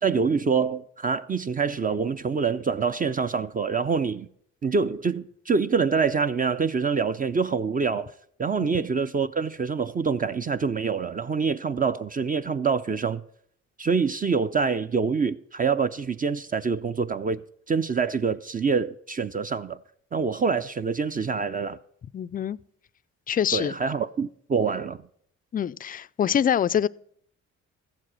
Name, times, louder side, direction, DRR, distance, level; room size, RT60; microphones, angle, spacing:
voice 1, 0.0-4.3 4.6-8.1 8.4-13.2 13.8-17.4 17.7-19.8 20.1-21.8 23.5-25.0, right 5 dB, 30° right, 0.5 m, -25 dB
voice 2, 22.1-22.6 23.3-23.7 25.5-26.9, left 9 dB, 30° left, 0.4 m, -25 dB
14.0 x 7.5 x 6.2 m
cardioid pair, 90°, 30 cm